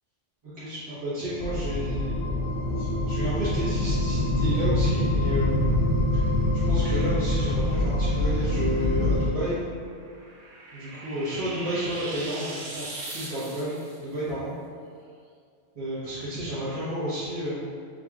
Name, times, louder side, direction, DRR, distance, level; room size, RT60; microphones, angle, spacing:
voice 1, 0.4-2.2 2.8-5.9 6.1-6.3 6.6-9.6 10.7-14.5 15.7-17.6, equal, 30° right, -12 dB, 1.1 m, -31 dB
sound 1, 1.4-9.3, left 1 dB, 70° left, 1.1 m, -25 dB
sound 2, 9.8-14.0, right 2 dB, 85° right, 1.2 m, -39 dB
5.2 x 3.2 x 2.4 m, 2.2 s
omnidirectional pair, 1.3 m